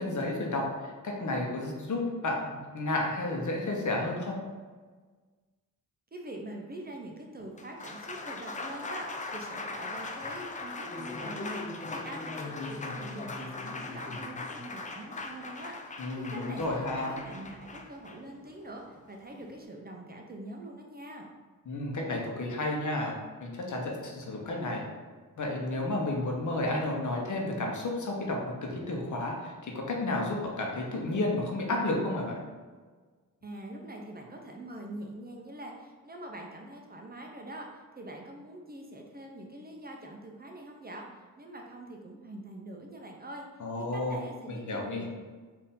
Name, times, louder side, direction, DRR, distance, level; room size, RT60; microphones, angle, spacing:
voice 1, 0.0-4.4 16.0-17.2 21.7-23.1 23.4-24.9 25.4-32.4 43.6-44.2 44.5-45.1, left 2 dB, 60° left, 0 dB, 0.9 m, -32 dB
voice 2, 6.1-21.3 33.4-43.5 43.9-45.1, right 1 dB, 25° right, 1 dB, 0.6 m, -44 dB
Applause, 7.4-19.6, left 3 dB, 25° left, 0.4 m, -39 dB
4.3 x 2.7 x 3.6 m, 1.4 s
cardioid pair, 85°, 34 cm